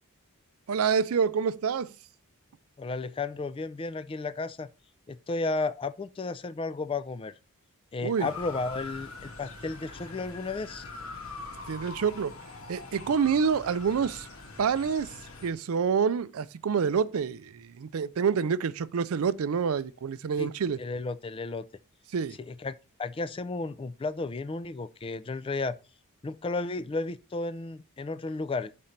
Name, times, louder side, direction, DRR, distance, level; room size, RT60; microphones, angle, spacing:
voice 1, 0.7-1.9 8.0-8.3 11.7-12.3 12.7-14.3 14.6-15.1 15.4-20.8 22.1-22.4, right 6 dB, 70° right, 0.4 m, -27 dB
voice 2, 2.8-4.7 5.1-7.3 7.9-10.8 20.4-20.5 20.8-21.7 22.4-22.7 23.0-25.7 26.2-28.7, left 3 dB, 25° left, 0.3 m, -33 dB
Motor vehicle (road) / Siren, 8.2-15.5, left 3 dB, 65° left, 1.6 m, -43 dB
5.8 x 4.2 x 5.0 m
head